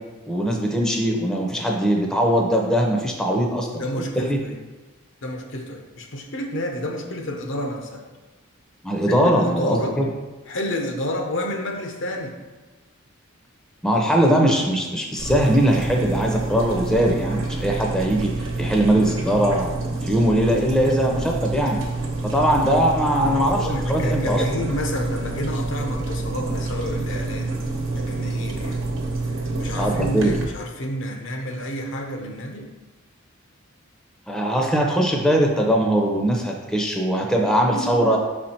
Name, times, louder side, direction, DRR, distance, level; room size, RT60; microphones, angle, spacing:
voice 1, 0.3-4.4 8.8-10.0 13.8-21.8 22.2-24.7 29.8-30.3 34.3-38.2, equal, 5° left, 0 dB, 0.7 m, -21 dB
voice 2, 3.3-4.6 5.2-8.0 9.1-10.0 10.5-12.4 23.6-27.6 27.9-28.8 29.6-32.7 37.7-38.2, left 1 dB, 65° left, 3 dB, 0.8 m, -30 dB
sound 1, 15.2-30.4, right 2 dB, 75° right, 1.1 m, -27 dB
5.9 x 4.4 x 4.3 m, 1.2 s
head